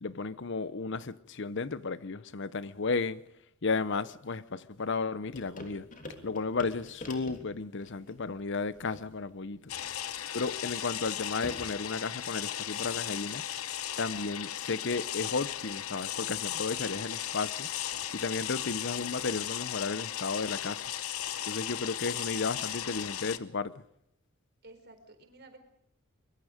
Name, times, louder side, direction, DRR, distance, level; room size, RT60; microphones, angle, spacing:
voice 1, 0.0-3.2 3.6-5.9 6.2-9.8 10.3-13.5 14.0-17.7 18.1-20.8 21.5-23.8, left 4 dB, 55° left, 0.8 m, -33 dB
sound 1, 5.3-11.9, left 1 dB, 40° left, 3.4 m, -48 dB
sound 2, 9.7-23.4, left 11 dB, 80° left, 1.0 m, -36 dB
voice 2, 22.0-23.0 24.6-25.6, right 2 dB, 50° right, 4.3 m, -54 dB
24.0 x 23.0 x 5.1 m
head